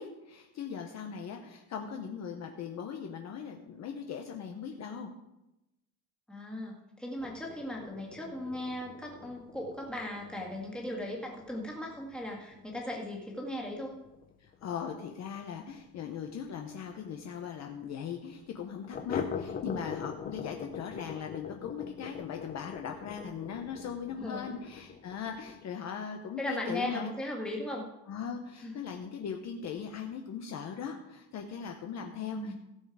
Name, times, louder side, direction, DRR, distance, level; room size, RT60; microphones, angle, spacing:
voice 1, 0.0-5.1 14.4-27.1 28.1-32.5, left 7 dB, 40° left, 3 dB, 0.9 m, -39 dB
voice 2, 6.3-14.0 19.6-19.7 24.2-24.5 26.4-27.9 28.6-28.7 32.2-32.5, left 1 dB, ahead, -2 dB, 1.9 m, -37 dB
sound 1, 7.2-16.4 16.7-16.8 17.2-17.3 17.6-17.7 18.9-25.6, left 7 dB, 20° left, 0.5 m, -43 dB
16.5 x 7.0 x 4.8 m, 0.94 s
cardioid pair, 170°, 42 cm